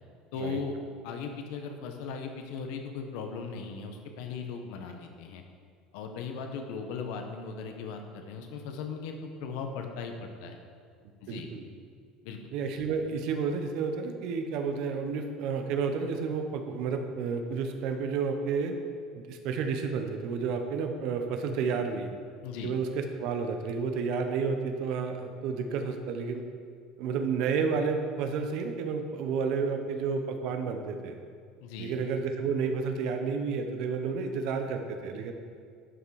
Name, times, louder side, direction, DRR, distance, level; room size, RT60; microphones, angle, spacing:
voice 1, 0.3-0.7 1.0-5.4 5.9-10.6 11.2-11.5 12.2-12.5 22.4-22.7 31.6-31.9, left 5 dB, 70° left, 4 dB, 1.0 m, -38 dB
voice 2, 11.3-11.7 12.5-18.7 19.1-22.1 22.6-26.4 27.0-31.2 31.8-35.3, right 5 dB, 50° right, 5 dB, 0.9 m, -31 dB
11.0 x 5.8 x 4.8 m, 2.2 s
cardioid pair, 175°, 0 cm